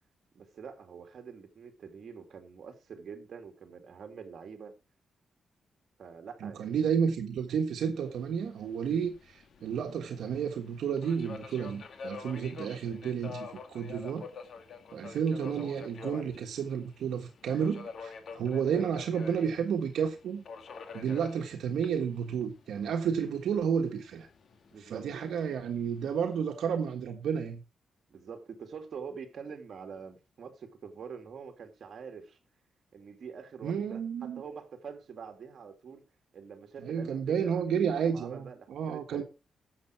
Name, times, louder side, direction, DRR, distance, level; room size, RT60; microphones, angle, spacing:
voice 1, 0.3-4.8 6.0-6.8 24.7-25.2 28.1-32.4 32.9-36.0 36.3-39.2, right 6 dB, 60° right, 2.6 m, -45 dB
voice 2, 6.4-14.3 14.9-20.4 20.9-24.3 24.8-27.6 33.6-34.4 36.8-39.2, right 7 dB, 90° right, 1.4 m, -31 dB
Subway metro underground, 8.0-26.4, left 5 dB, 65° left, 2.1 m, -48 dB
12.0 x 7.9 x 4.6 m
cardioid pair, 115°, 0 cm